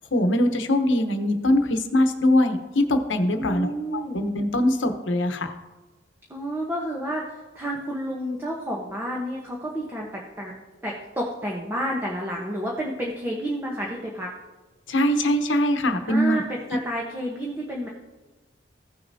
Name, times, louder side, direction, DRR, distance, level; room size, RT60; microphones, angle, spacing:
voice 1, 0.1-5.5 14.9-16.4, left 1 dB, 75° left, 7 dB, 0.9 m, -22 dB
voice 2, 3.3-4.2 6.3-10.5 10.8-14.3 16.1-17.9, equal, 10° right, -2 dB, 1.0 m, -30 dB
16.0 x 6.5 x 2.7 m, 1.1 s
head